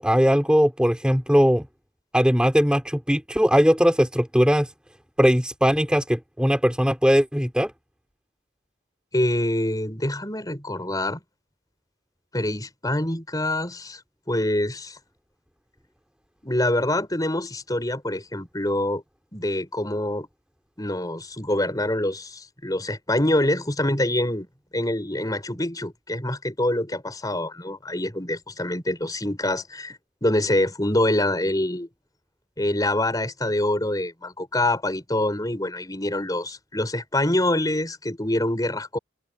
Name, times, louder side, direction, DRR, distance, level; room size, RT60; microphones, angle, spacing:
voice 1, 0.0-1.7 2.1-4.7 5.2-7.7, equal, 5° right, 2.4 m, -20 dB
voice 2, 9.1-11.2 12.3-14.0 14.3-15.0 16.4-19.0 19.3-20.3 20.8-24.5 24.7-31.9 32.6-39.0, left 1 dB, 20° left, 5.0 m, -25 dB
head